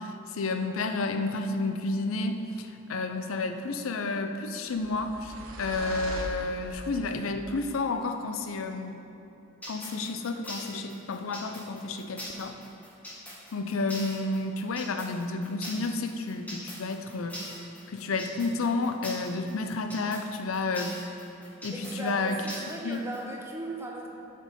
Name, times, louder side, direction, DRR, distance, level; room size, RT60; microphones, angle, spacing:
voice 1, 0.0-5.3 5.6-9.0 9.7-12.5 13.5-17.4 17.9-20.9 21.6-22.5 22.8-23.0, left 3 dB, 80° left, 6 dB, 0.5 m, -31 dB
sound 1, 4.7-7.2, right 2 dB, 85° right, 0.9 m, -40 dB
sound 2, 9.6-23.2, equal, 5° left, 1.2 m, -42 dB
voice 2, 21.7-24.1, right 1 dB, 10° right, -1 dB, 0.8 m, -37 dB
7.3 x 5.2 x 5.2 m, 3.0 s
head